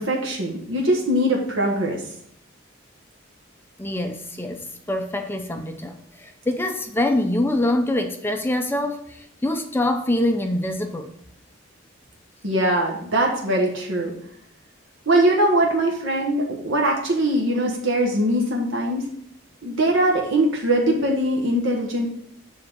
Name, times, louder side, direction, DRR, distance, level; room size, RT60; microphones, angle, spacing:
voice 1, 0.0-2.0 12.4-14.1 15.1-19.1 19.6-22.1, right 1 dB, 70° right, 0 dB, 1.2 m, -21 dB
voice 2, 3.8-11.1, left 1 dB, 10° left, 6 dB, 0.5 m, -25 dB
7.6 x 3.7 x 6.0 m, 0.68 s
head